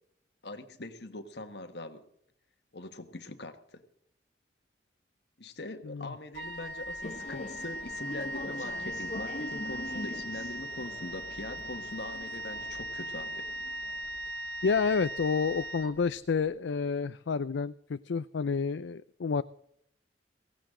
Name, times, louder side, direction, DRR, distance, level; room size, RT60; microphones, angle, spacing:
voice 1, 0.4-2.1 2.7-3.8 5.4-13.5, left 2 dB, 60° left, 8 dB, 1.5 m, -42 dB
Wind instrument woodwind instrument, 6.3-16.4, right 1 dB, 70° right, 1.6 m, -39 dB
sound 1, 7.0-14.2, left 2 dB, 40° left, 0.8 m, -44 dB
voice 2, 14.6-19.4, left 5 dB, 80° left, 13 dB, 0.5 m, -29 dB
17.0 x 16.5 x 3.8 m, 0.70 s
head